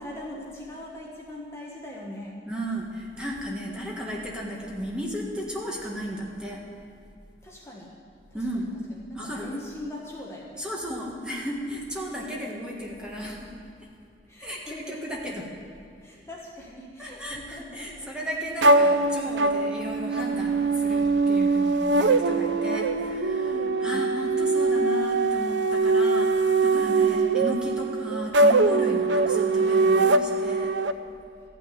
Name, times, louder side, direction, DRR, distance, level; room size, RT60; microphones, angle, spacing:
voice 1, 0.0-2.4 7.4-7.9 8.3-10.7 12.2-12.8 14.3-15.4 16.0-18.1 23.5-24.1 26.9-27.2, left 1 dB, 15° left, -4 dB, 1.4 m, -41 dB
voice 2, 2.4-6.6 8.3-8.7 9.1-9.5 10.6-13.5 14.4-15.5 17.0-30.7, equal, 5° right, -3 dB, 1.5 m, -34 dB
sound 1, 18.6-30.9, right 3 dB, 85° right, 0.5 m, -22 dB
13.5 x 6.2 x 9.5 m, 2.5 s
head